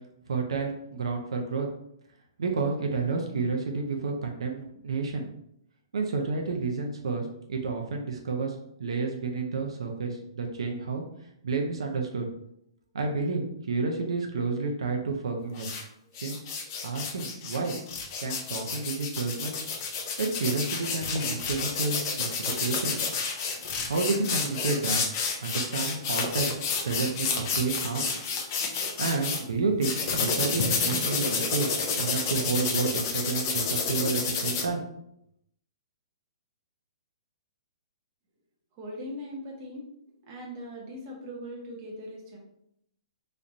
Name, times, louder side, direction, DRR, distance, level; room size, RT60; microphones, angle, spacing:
voice 1, 0.3-1.7 2.4-5.3 5.9-11.0 11.4-12.3 12.9-15.8 16.2-16.4 16.8-17.8 18.2-19.6 20.2-23.0 23.9-25.0 25.4-26.5 26.8-28.1 29.0-34.8, right 4 dB, 80° right, 3 dB, 0.7 m, -30 dB
sound 1, 15.5-15.8 16.2-29.4 29.8-34.6, left 5 dB, 35° left, 0.6 m, -30 dB
voice 2, 38.7-39.8 40.2-42.4, equal, 25° right, -2 dB, 1.0 m, -40 dB
3.2 x 2.5 x 4.0 m, 0.75 s
hypercardioid pair, 165°, 3 cm